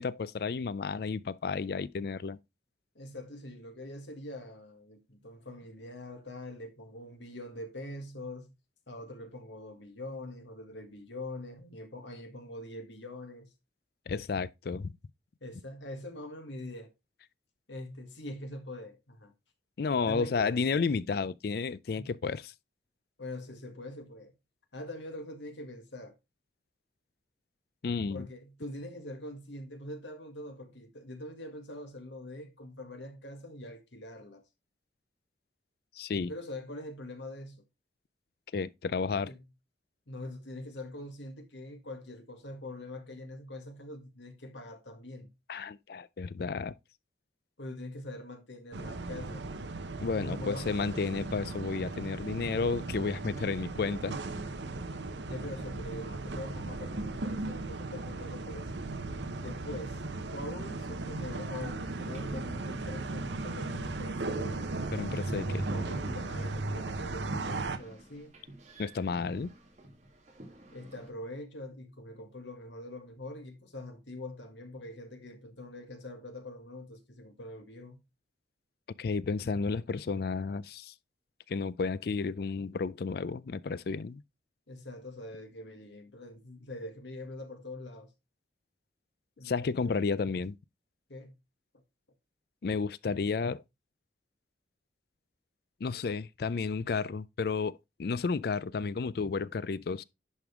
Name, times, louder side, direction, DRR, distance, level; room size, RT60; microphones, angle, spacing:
voice 1, 0.0-2.4 14.1-14.9 19.8-22.5 27.8-28.3 36.0-36.3 38.5-39.3 45.5-46.8 50.0-54.2 64.9-65.6 68.8-69.5 79.0-80.9 81.5-84.2 89.4-90.6 92.6-93.6 95.8-100.0, left 4 dB, 55° left, 0.4 m, -32 dB
voice 2, 2.9-8.5 8.9-13.5 15.4-16.9 17.7-19.3 20.1-20.6 21.9-22.2 23.2-24.3 24.7-26.1 28.1-34.4 36.3-37.6 39.3-39.4 40.1-45.3 47.6-49.5 50.2-50.8 55.3-58.8 59.4-60.0 60.3-64.8 65.3-68.4 70.7-78.0 84.7-88.1 89.4-90.0 91.1-91.3 91.7-91.8, left 1 dB, 80° left, 1.9 m, -43 dB
sound 1, 48.7-67.8, right 2 dB, 75° right, 0.9 m, -37 dB
sound 2, 61.3-71.1, right 1 dB, 40° right, 2.7 m, -51 dB
10.5 x 5.2 x 3.6 m
head